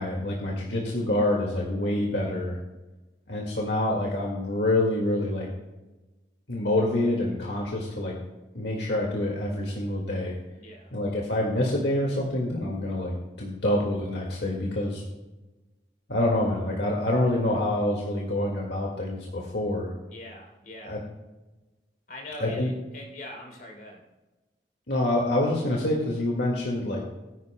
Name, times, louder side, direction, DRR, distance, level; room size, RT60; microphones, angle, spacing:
voice 1, 0.0-2.6 3.3-5.5 6.5-8.2 8.5-10.4 10.9-15.0 16.1-19.9 20.8-21.0 22.4-22.7 24.9-27.0, left 1 dB, 75° left, -2 dB, 1.9 m, -26 dB
voice 2, 10.6-10.9 20.1-21.0 22.1-24.0, left 1 dB, 50° left, 0 dB, 3.4 m, -43 dB
18.5 x 11.0 x 2.2 m, 1.1 s
head